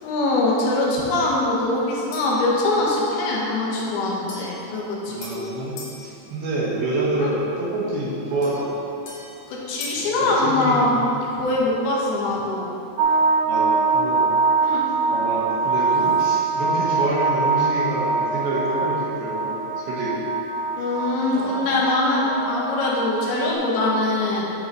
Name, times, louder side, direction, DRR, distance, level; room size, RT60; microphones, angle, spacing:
voice 1, 0.0-5.6 7.2-7.3 9.5-11.0 11.3-12.7 14.6-14.8 20.8-24.5, left 2 dB, 75° left, -4 dB, 3.1 m, -23 dB
sound 1, 2.1-2.5 4.3-6.0 8.4-10.1, left 3 dB, 60° left, 1.8 m, -40 dB
voice 2, 5.1-5.8 6.0-8.9 9.9-11.1 13.4-14.4 15.1-20.2 21.3-21.7, right 2 dB, 70° right, -6 dB, 3.0 m, -27 dB
sound 2, 13.0-23.5, right 4 dB, 85° right, 1.9 m, -23 dB
9.5 x 5.6 x 4.0 m, 3.0 s
omnidirectional pair, 4.7 m